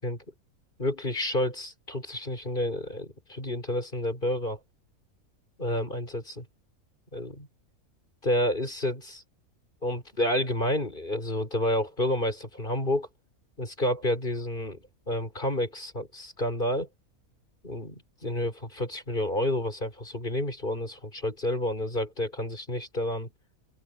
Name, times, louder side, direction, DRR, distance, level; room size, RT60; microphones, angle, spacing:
voice 1, 0.8-4.6 5.6-6.5 7.1-7.5 8.2-9.2 9.8-13.1 13.6-16.9 17.6-23.3, left 1 dB, 35° left, 5.9 m, -30 dB
open air
omnidirectional pair, 1.5 m